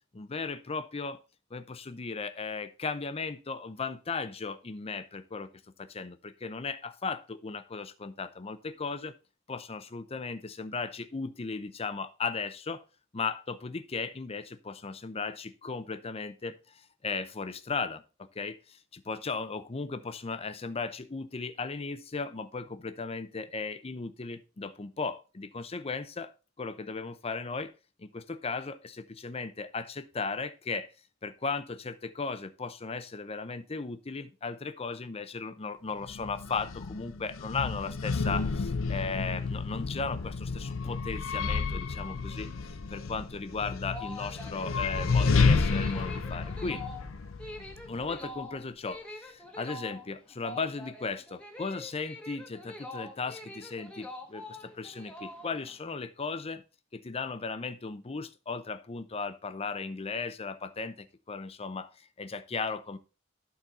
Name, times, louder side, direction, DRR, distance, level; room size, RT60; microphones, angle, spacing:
voice 1, 0.1-1.2 1.5-5.5 5.8-9.1 9.5-12.8 13.1-16.6 17.0-26.3 26.6-27.7 28.0-30.9 31.2-42.5 42.9-46.9 47.9-56.6 56.9-63.0, left 4 dB, 30° left, 0.6 m, -36 dB
sound 1, 36.0-48.2, left 4 dB, 85° left, 0.7 m, -31 dB
sound 2, 43.8-55.8, left 2 dB, 5° left, 1.1 m, -45 dB
12.0 x 4.0 x 4.1 m
head